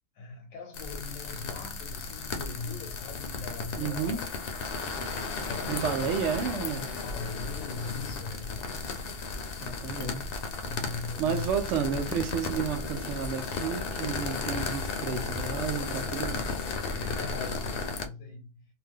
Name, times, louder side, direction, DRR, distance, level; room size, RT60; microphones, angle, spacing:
voice 1, 0.1-4.3 5.4-5.9 7.0-8.7 9.9-10.2 10.6-11.5 17.0-18.6, left 4 dB, 85° left, 1.0 m, -40 dB
sound 1, 0.7-18.1, left 4 dB, 60° left, 0.6 m, -34 dB
voice 2, 3.8-4.2 5.7-6.9 9.6-10.3 11.2-16.5, right 7 dB, 70° right, 0.9 m, -31 dB
2.5 x 2.3 x 3.3 m
omnidirectional pair, 1.4 m